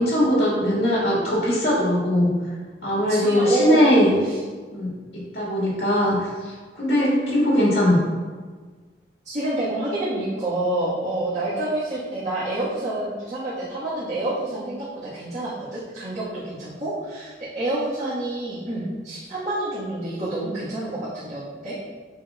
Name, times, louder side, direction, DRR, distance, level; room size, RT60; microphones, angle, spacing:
voice 1, 0.0-2.4 2.8-4.1 4.7-8.0, equal, 70° left, -6 dB, 1.8 m, -20 dB
voice 2, 3.1-3.9 6.9-7.7 9.2-21.8, right 1 dB, 40° right, -13 dB, 1.6 m, -28 dB
7.7 x 5.1 x 2.4 m, 1.4 s
head